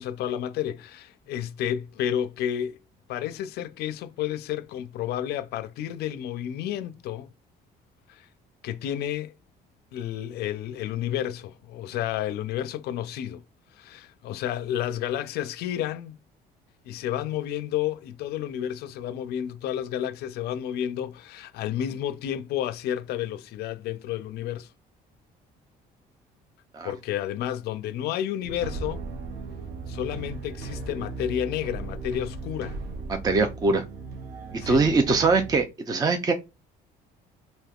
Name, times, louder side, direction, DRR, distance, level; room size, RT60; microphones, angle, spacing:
voice 1, 0.0-2.8 3.1-7.3 8.1-8.3 8.6-9.3 9.9-13.4 13.7-16.2 16.9-24.7 26.8-29.0 29.9-32.8 34.6-34.9, left 11 dB, 75° left, 0.4 m, -31 dB
sound 1, 28.4-35.6, right 3 dB, 85° right, 0.6 m, -37 dB
voice 2, 33.2-33.8 34.7-36.3, right 3 dB, 20° right, 0.4 m, -22 dB
3.4 x 2.6 x 2.3 m
cardioid pair, 110°, 17 cm